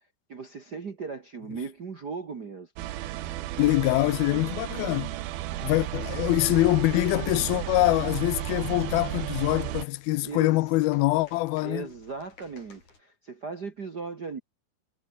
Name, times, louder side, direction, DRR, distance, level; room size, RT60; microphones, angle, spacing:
voice 1, 0.3-2.7 5.5-5.8 10.2-10.7 11.6-14.4, right 5 dB, 50° right, 1.2 m, -38 dB
sound 1, 2.8-9.9, right 15 dB, 85° right, 3.0 m, -33 dB
voice 2, 3.6-5.1 5.6-11.9, left 19 dB, 85° left, 2.5 m, -24 dB
sound 2, 7.8-13.0, left 4 dB, 50° left, 8.3 m, -57 dB
omnidirectional pair, 4.3 m